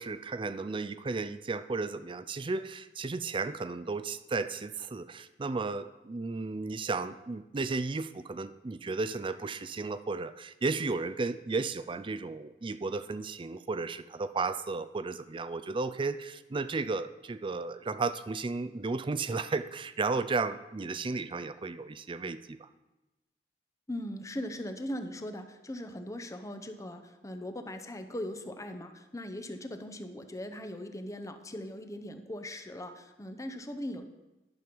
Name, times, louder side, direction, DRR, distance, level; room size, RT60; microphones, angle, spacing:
voice 1, 0.0-22.7, right 3 dB, 30° right, 13 dB, 0.4 m, -34 dB
voice 2, 23.9-34.1, left 1 dB, 20° left, 7 dB, 0.7 m, -39 dB
11.5 x 5.3 x 6.1 m, 1.0 s
head